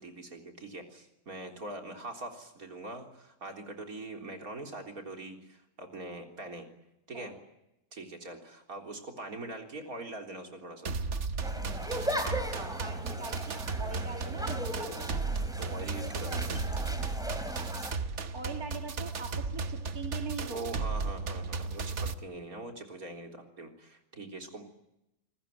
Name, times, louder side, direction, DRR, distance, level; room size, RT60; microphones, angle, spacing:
voice 1, 0.0-6.7 7.1-7.3 7.9-10.9 15.6-16.8 20.5-24.6, right 2 dB, 75° right, 3 dB, 4.2 m, -43 dB
sound 1, 10.9-22.1, right 4 dB, 55° right, 1.4 m, -35 dB
sound 2, 11.4-17.9, equal, ahead, 3.0 m, -38 dB
voice 2, 12.5-15.2 18.3-20.7, right 4 dB, 90° right, 2 dB, 3.2 m, -42 dB
28.5 x 20.0 x 9.2 m, 0.87 s
omnidirectional pair, 1.5 m